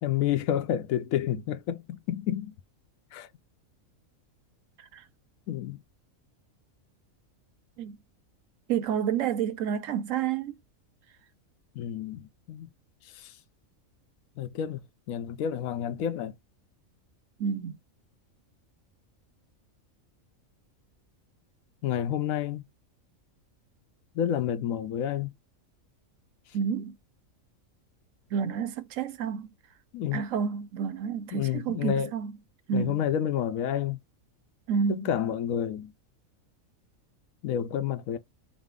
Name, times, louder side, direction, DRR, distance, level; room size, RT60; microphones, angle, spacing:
voice 1, 0.0-2.5 3.1-3.3 5.5-5.8 11.8-12.7 13.1-13.3 14.4-16.3 21.8-22.6 24.1-25.3 29.9-30.2 31.3-32.1 32.7-34.0 34.9-35.9 37.4-38.2, left 10 dB, 85° left, 1.0 m, -29 dB
voice 2, 8.7-10.6 17.4-17.8 26.5-27.0 28.3-29.5 30.1-32.3 32.7-33.0 34.7-35.1, right 7 dB, 75° right, 1.0 m, -29 dB
5.0 x 2.0 x 3.6 m
omnidirectional pair, 1.4 m